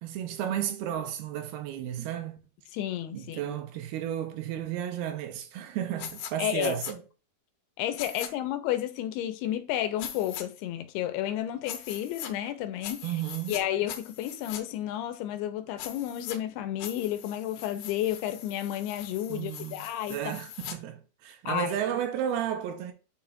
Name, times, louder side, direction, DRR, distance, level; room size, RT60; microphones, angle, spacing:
voice 1, 0.0-2.4 3.1-7.0 13.0-13.6 19.3-22.9, right 10 dB, 80° right, 2.7 m, -33 dB
voice 2, 2.7-3.6 6.4-6.8 7.8-13.0 13.5-20.2 21.5-21.7, left 12 dB, 90° left, 2.7 m, -31 dB
sound 1, 6.0-6.3 6.6-6.9 8.0-8.3 10.0-10.4 11.6-12.3 12.8-13.6 13.9-14.6 15.8-16.4 16.8-20.8, left 9 dB, 70° left, 2.6 m, -41 dB
9.2 x 5.7 x 2.4 m
omnidirectional pair, 4.7 m